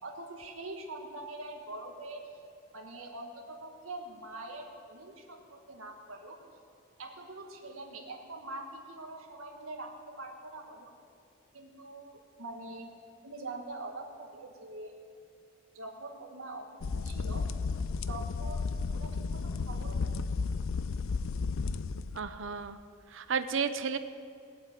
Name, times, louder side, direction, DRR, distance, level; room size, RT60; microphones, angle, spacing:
voice 1, 0.0-2.2 2.7-6.4 7.0-10.9 11.5-12.9 13.2-14.9 15.7-17.4 18.1-20.2, right 2 dB, 85° right, 2 dB, 2.0 m, -44 dB
sound 1, 16.8-22.2, left 4 dB, 75° left, 0.5 m, -33 dB
voice 2, 22.1-22.8 23.1-24.0, right 6 dB, 65° right, 10 dB, 0.7 m, -32 dB
18.0 x 8.2 x 9.3 m, 2.4 s
head